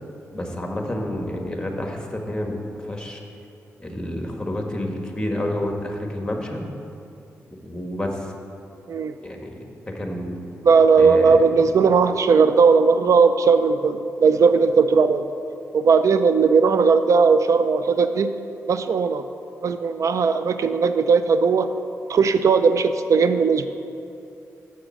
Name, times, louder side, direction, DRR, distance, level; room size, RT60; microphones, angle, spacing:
voice 1, 0.3-2.5 2.9-3.2 3.8-6.7 7.6-8.2 9.2-9.6 9.9-10.3 11.0-11.4, left 1 dB, 15° left, 2 dB, 1.6 m, -29 dB
voice 2, 10.6-15.2 15.7-18.3 18.7-19.2 19.6-21.7 22.1-23.7, right 5 dB, 65° right, 10 dB, 0.4 m, -17 dB
7.0 x 6.3 x 7.5 m, 2.7 s
cardioid pair, 55°, 6 cm